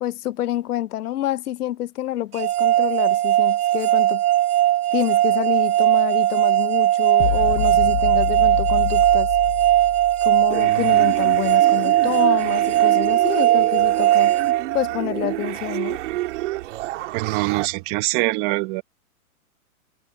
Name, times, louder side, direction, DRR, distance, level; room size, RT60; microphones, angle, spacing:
voice 1, 0.0-4.2 4.9-9.3 10.2-14.4 14.7-16.0, left 13 dB, 90° left, 0.7 m, -28 dB
sound 1, 2.4-15.3, right 14 dB, 80° right, 1.1 m, -19 dB
sound 2, 7.2-10.6, left 15 dB, 55° left, 1.0 m, -28 dB
sound 3, 10.5-17.7, right 17 dB, 55° right, 2.6 m, -29 dB
voice 2, 17.1-18.8, right 23 dB, 30° right, 1.1 m, -23 dB
hypercardioid pair, 145°, 44 cm